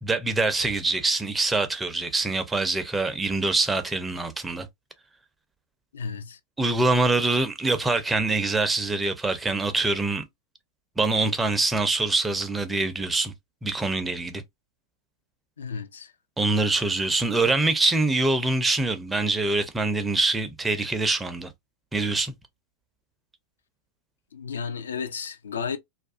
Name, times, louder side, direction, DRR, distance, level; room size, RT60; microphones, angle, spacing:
voice 1, 0.0-4.7 6.6-10.2 11.0-13.3 13.6-14.4 16.4-21.5 21.9-22.3, right 2 dB, 10° right, 0.5 m, -24 dB
voice 2, 5.9-6.4 15.6-16.1 24.3-25.8, left 6 dB, 70° left, 0.4 m, -33 dB
2.4 x 2.3 x 2.3 m
figure-of-eight pair, 90°, 0 cm